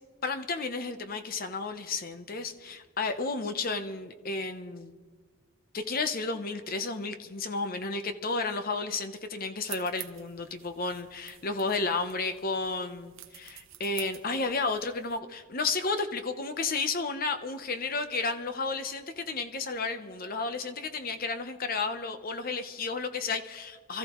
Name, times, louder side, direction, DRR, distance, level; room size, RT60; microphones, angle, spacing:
voice 1, 0.2-4.9 5.7-24.0, left 3 dB, 40° left, 8 dB, 0.8 m, -32 dB
sound 1, 9.6-15.2, right 13 dB, 65° right, 1.0 m, -48 dB
27.0 x 14.0 x 3.1 m, 1.5 s
head